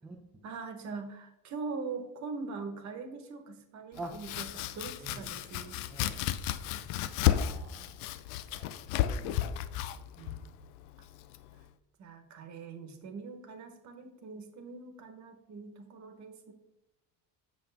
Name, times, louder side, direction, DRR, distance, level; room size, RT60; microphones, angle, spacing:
voice 1, 0.4-5.8 10.2-10.3 12.0-16.5, right 4 dB, 45° right, 7 dB, 1.2 m, -42 dB
Domestic sounds home sounds, 3.9-11.7, left 11 dB, 80° left, 0.6 m, -33 dB
voice 2, 5.9-6.2 7.3-8.0 8.5-8.8 9.0-9.2, right 2 dB, 5° right, 1 dB, 0.5 m, -45 dB
7.9 x 6.8 x 3.4 m, 0.90 s
cardioid pair, 165°, 41 cm